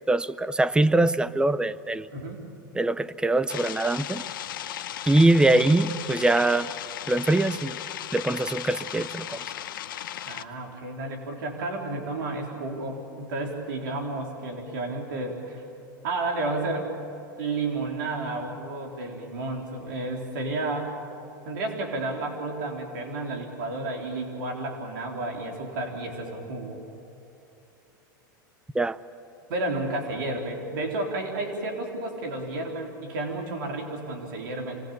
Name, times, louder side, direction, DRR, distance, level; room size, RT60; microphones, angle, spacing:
voice 1, 0.1-2.1 2.7-4.2 5.0-6.7 7.1-7.8 8.1-9.4 28.7-29.0, right 2 dB, 10° right, 15 dB, 0.7 m, -23 dB
voice 2, 2.1-2.4 10.2-15.7 16.0-16.9 17.4-21.0 21.5-26.8 29.5-34.8, right 2 dB, 70° right, 2 dB, 3.7 m, -31 dB
sound 1, 3.5-10.4, left 11 dB, 80° left, 0.8 m, -36 dB
26.5 x 19.0 x 8.5 m, 2.9 s
hypercardioid pair, 110°, 11 cm